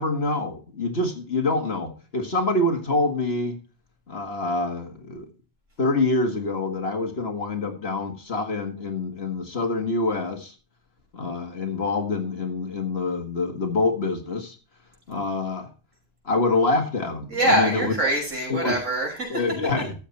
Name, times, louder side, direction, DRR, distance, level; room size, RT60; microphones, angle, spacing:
voice 1, 0.0-3.6 4.1-5.3 5.8-10.5 11.1-14.6 15.1-15.7 16.3-17.9 18.5-18.7 19.3-19.9, left 2 dB, 55° left, 5 dB, 2.0 m, -26 dB
voice 2, 17.3-19.4, right 1 dB, 80° right, -1 dB, 6.4 m, -24 dB
13.0 x 7.9 x 4.3 m, 0.35 s
omnidirectional pair, 1.3 m